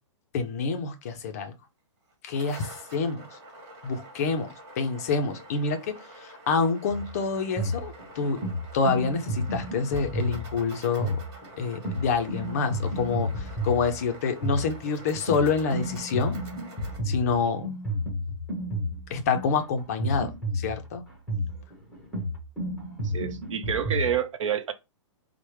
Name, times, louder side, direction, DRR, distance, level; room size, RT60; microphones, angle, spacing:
voice 1, 0.3-1.5 2.2-3.3 3.8-4.5 4.8-8.4 8.7-11.2 11.6-16.4 17.1-17.8 19.1-21.0, left 5 dB, 30° left, 0.4 m, -27 dB
sound 1, 2.1-17.0, right 1 dB, 40° right, 1.7 m, -47 dB
sound 2, 6.9-24.1, equal, ahead, 0.8 m, -32 dB
voice 2, 23.0-24.7, right 8 dB, 70° right, 0.7 m, -28 dB
4.4 x 2.1 x 3.1 m
hypercardioid pair, 165°, 16 cm